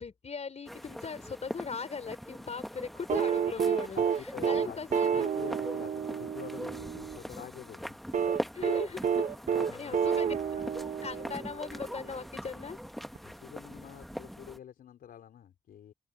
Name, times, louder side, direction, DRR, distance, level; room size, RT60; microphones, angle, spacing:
voice 1, 0.0-4.0 4.4-5.3 8.5-9.3 9.7-10.6 11.0-12.8, left 5 dB, 45° left, 5.4 m, -39 dB
sound 1, 0.7-14.6, equal, ahead, 1.4 m, -42 dB
sound 2, 3.1-7.2 8.1-11.7 13.2-13.3, right 7 dB, 55° right, 1.2 m, -29 dB
voice 2, 3.9-8.0 9.5-10.0 10.3-10.8 11.2-11.3 13.2-15.9, left 9 dB, 80° left, 4.9 m, -47 dB
open air
cardioid pair, 70°, 15 cm